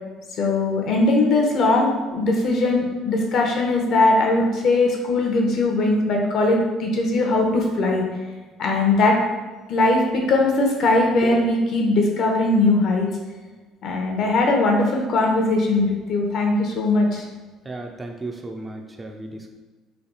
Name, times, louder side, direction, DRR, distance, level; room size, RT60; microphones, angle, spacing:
voice 1, 0.4-8.0 8.6-9.2 9.7-13.1 13.8-17.2, left 2 dB, 60° left, 1 dB, 0.8 m, -20 dB
voice 2, 17.6-19.5, right 2 dB, 20° right, 2 dB, 0.5 m, -35 dB
3.3 x 2.3 x 4.0 m, 1.3 s
supercardioid pair, 80°, 0 cm